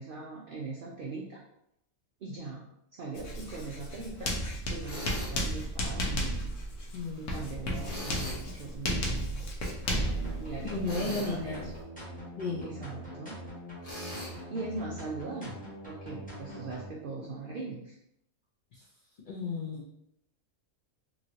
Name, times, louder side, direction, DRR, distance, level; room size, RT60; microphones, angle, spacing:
voice 1, 0.0-1.4 2.2-2.6 2.9-6.5 7.2-9.4 10.2-11.7 12.6-13.4 14.3-15.6 15.9-18.0, right 3 dB, 85° right, -2 dB, 0.4 m, -40 dB
Writing, 3.2-11.8, equal, 85° left, 1.2 m, -34 dB
Tools, 4.9-5.4 7.8-8.4 10.8-11.4 13.8-14.3, left 1 dB, 40° left, 1.3 m, -39 dB
voice 2, 6.9-7.3 10.6-11.7 12.4-12.7 18.8-18.9 19.3-20.0, left 3 dB, 60° left, -6 dB, 0.5 m, -34 dB
sound 1, 9.8-16.9, equal, 5° left, 0.9 m, -44 dB
3.1 x 2.9 x 2.7 m, 0.77 s
omnidirectional pair, 1.5 m